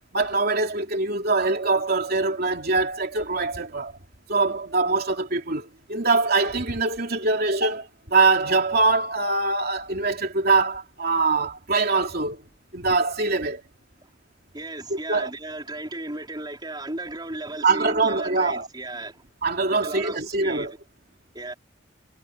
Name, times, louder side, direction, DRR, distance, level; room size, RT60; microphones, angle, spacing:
voice 1, 0.1-4.0 4.3-12.4 12.7-13.6 14.9-15.3 17.6-18.7 19.4-20.7, right 3 dB, 55° right, 3.0 m, -23 dB
voice 2, 14.5-19.2 19.8-20.7 21.3-21.5, right 2 dB, 20° right, 4.1 m, -35 dB
head